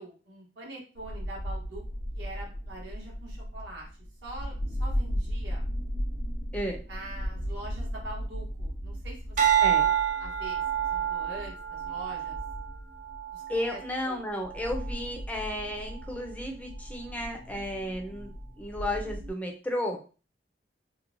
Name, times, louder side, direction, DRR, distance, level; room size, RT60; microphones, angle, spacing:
voice 1, 0.0-1.8 2.1-3.9 4.2-5.7 6.9-9.9 10.2-10.6 10.9-12.4 13.3-13.4 13.7-14.2, right 1 dB, 70° right, -3 dB, 1.1 m, -44 dB
sound 1, 1.0-19.3, equal, 80° left, 0.9 m, -36 dB
sound 2, 9.4-13.8 14.4-14.8, right 10 dB, 45° right, 0.4 m, -28 dB
voice 2, 13.5-18.3 18.6-20.0, left 1 dB, 10° left, 1 dB, 0.5 m, -33 dB
2.9 x 2.1 x 2.5 m, 0.36 s
head